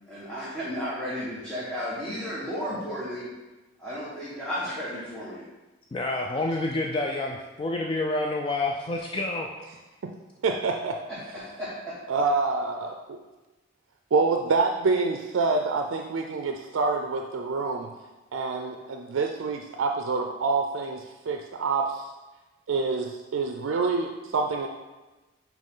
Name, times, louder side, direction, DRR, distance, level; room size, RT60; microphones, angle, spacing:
voice 1, 0.1-3.3 3.8-5.4 11.6-11.9, equal, 5° left, -10 dB, 1.2 m, -33 dB
voice 2, 5.9-9.5, left 2 dB, 25° left, 1 dB, 0.3 m, -28 dB
voice 3, 10.4-10.9 12.1-12.9 14.1-17.9 18.3-21.0 21.3-21.8 22.7-24.7, right 4 dB, 80° right, 3 dB, 0.4 m, -26 dB
9.1 x 3.0 x 3.7 m, 1.1 s
head